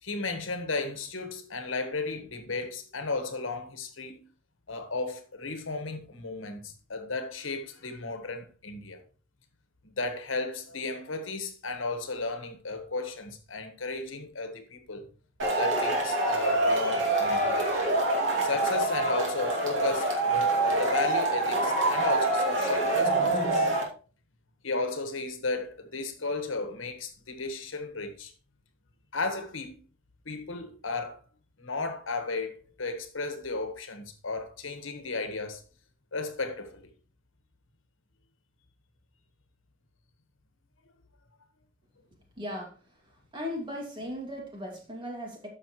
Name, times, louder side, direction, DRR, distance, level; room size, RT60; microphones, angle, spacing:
voice 1, 0.0-4.3 4.7-9.0 9.9-15.0 15.6-17.7 18.4-23.6 24.6-28.3 29.1-29.8 30.2-31.2 31.6-35.6 36.1-36.8, left 3 dB, 75° left, 1.4 m, -34 dB
Male speech man speaking / Shout / Clapping, 15.4-23.8, right 2 dB, 70° right, 2.6 m, -26 dB
voice 2, 42.4-42.7 43.3-45.5, left 1 dB, 25° right, 2.5 m, -37 dB
13.0 x 5.8 x 3.1 m
head